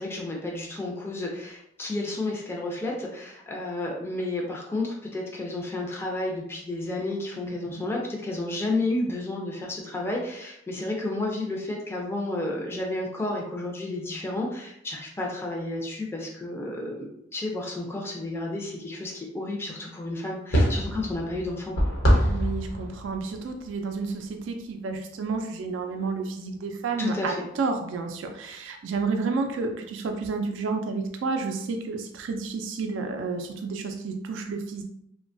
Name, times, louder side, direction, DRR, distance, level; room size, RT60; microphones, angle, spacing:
voice 1, 0.0-21.8 27.0-27.4, left 2 dB, 15° left, -1 dB, 0.4 m, -31 dB
sound 1, 20.5-24.0 24.3-24.4, equal, 80° left, 0.9 m, -25 dB
voice 2, 22.3-34.8, right 4 dB, 75° right, 4 dB, 0.3 m, -31 dB
2.9 x 2.1 x 2.5 m, 0.75 s
head